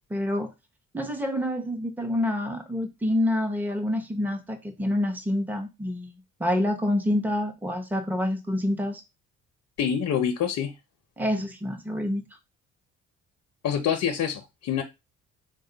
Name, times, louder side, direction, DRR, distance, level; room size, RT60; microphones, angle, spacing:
voice 1, 0.1-0.5 0.9-6.1 6.4-9.0 11.2-12.3, left 1 dB, 5° right, 6 dB, 0.7 m, -27 dB
voice 2, 9.8-10.7 13.6-14.8, left 8 dB, 65° left, 4 dB, 0.7 m, -26 dB
3.8 x 2.3 x 3.8 m, 0.23 s
cardioid pair, 90°, 30 cm